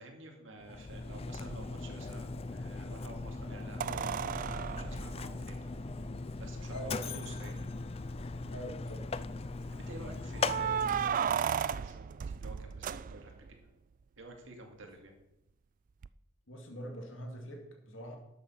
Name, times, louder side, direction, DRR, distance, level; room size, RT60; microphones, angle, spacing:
voice 1, 0.0-5.7 6.4-7.7 9.7-13.3 14.2-15.1, right 2 dB, 65° right, 2 dB, 2.4 m, -50 dB
Mechanisms, 0.6-11.4, left 3 dB, 30° left, 0.4 m, -39 dB
sound 1, 1.5-1.6 3.8-6.2 7.1-7.2 7.5-7.6 8.2-8.7 10.4-13.5 16.0-16.1, right 8 dB, 40° right, 0.3 m, -35 dB
voice 2, 6.7-7.2 8.5-9.1 16.5-18.2, equal, 70° left, 2 dB, 2.2 m, -43 dB
12.5 x 7.2 x 5.8 m, 0.89 s
head